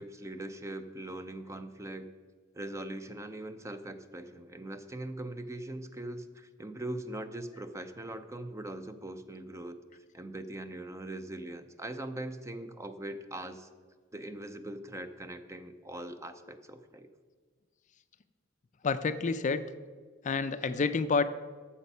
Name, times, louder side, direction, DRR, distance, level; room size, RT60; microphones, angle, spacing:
voice 1, 0.0-2.1 2.5-13.7 14.1-17.1, right 1 dB, 15° right, 10 dB, 0.6 m, -41 dB
voice 2, 18.8-19.6 20.2-21.2, left 4 dB, 35° left, 11 dB, 0.4 m, -28 dB
12.5 x 7.2 x 5.5 m, 1.5 s
head